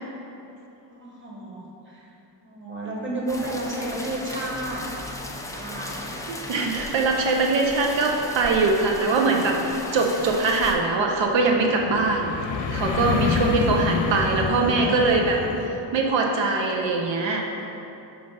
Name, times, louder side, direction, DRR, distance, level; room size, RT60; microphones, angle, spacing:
voice 1, 0.8-2.1 2.4-4.8 5.6-6.2 14.0-15.1, right 1 dB, 25° right, -4 dB, 1.1 m, -33 dB
sound 1, 3.3-10.7, left 1 dB, 10° left, 0.4 m, -36 dB
voice 2, 6.3-12.4 12.7-15.4 15.9-17.6, right 3 dB, 80° right, 1 dB, 0.6 m, -22 dB
sound 2, 9.3-15.7, left 5 dB, 75° left, 0.6 m, -28 dB
5.4 x 3.3 x 5.5 m, 3.0 s
wide cardioid pair, 120°, 44 cm